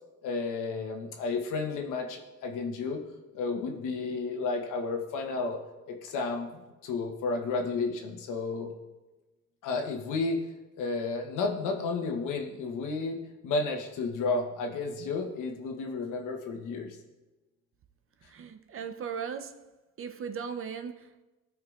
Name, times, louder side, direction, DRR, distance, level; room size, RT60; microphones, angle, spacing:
voice 1, 0.2-3.0 3.3-5.6 5.9-8.7 9.6-10.4 10.8-17.0, left 3 dB, 90° left, 1.1 m, -32 dB
voice 2, 18.3-19.7 20.0-21.2, right 6 dB, 45° right, 0.6 m, -38 dB
14.0 x 4.7 x 2.4 m
cardioid pair, 90°, 30 cm